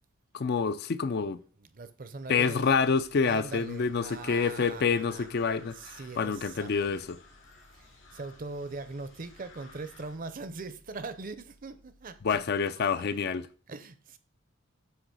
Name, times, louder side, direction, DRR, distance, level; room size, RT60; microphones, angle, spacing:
voice 1, 0.3-1.4 2.3-7.2 12.2-13.5, left 5 dB, 50° left, 0.4 m, -27 dB
voice 2, 1.6-2.7 3.2-5.3 5.7-7.0 7.7-12.4 13.7-14.2, right 3 dB, 40° right, 0.6 m, -41 dB
sound 1, 2.5-10.2, left 3 dB, 65° left, 2.7 m, -56 dB
sound 2, 2.6-12.4, left 1 dB, 85° left, 1.4 m, -62 dB
8.0 x 3.0 x 6.2 m
head